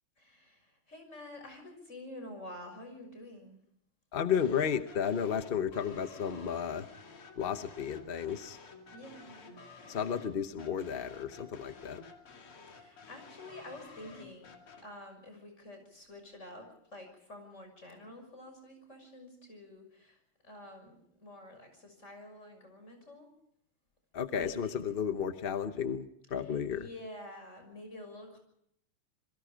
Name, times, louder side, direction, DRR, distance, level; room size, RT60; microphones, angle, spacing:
voice 1, 0.2-3.6 8.9-9.6 12.7-14.5 14.8-23.3 24.3-24.8 26.4-28.4, left 1 dB, 30° left, 5 dB, 6.7 m, -49 dB
voice 2, 4.1-6.9 7.4-8.6 9.9-12.0 24.1-26.9, left 7 dB, 50° left, 9 dB, 0.6 m, -33 dB
sound 1, 4.3-14.8, left 4 dB, 90° left, 3.5 m, -52 dB
27.5 x 22.0 x 5.1 m, 0.71 s
omnidirectional pair, 2.3 m